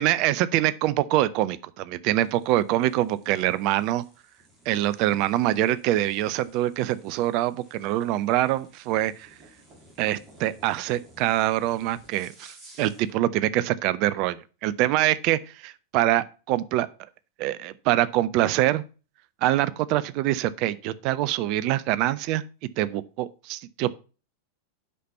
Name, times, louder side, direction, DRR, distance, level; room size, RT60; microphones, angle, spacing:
voice 1, 0.0-4.0 4.7-9.3 10.0-16.9 17.4-18.8 19.4-22.4 22.8-23.9, right 14 dB, 40° right, 0.6 m, -24 dB
sound 1, 2.2-13.2, right 1 dB, 25° right, 3.1 m, -55 dB
8.3 x 5.9 x 5.5 m
figure-of-eight pair, 90°, 0 cm